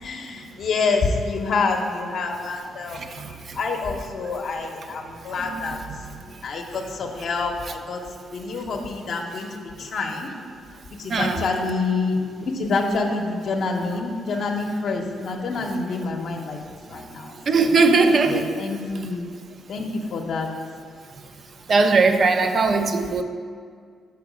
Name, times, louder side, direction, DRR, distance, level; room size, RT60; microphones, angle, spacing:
voice 1, 0.0-5.8 6.4-8.0 8.3-10.3 11.0-16.6 16.9-17.8 18.3-19.3 19.7-20.5, left 3 dB, 60° left, 2 dB, 0.7 m, -27 dB
voice 2, 11.1-11.4 17.5-18.5 21.7-23.2, right 4 dB, 45° right, 8 dB, 0.5 m, -18 dB
5.7 x 4.6 x 5.0 m, 2.1 s
cardioid pair, 90°, 0 cm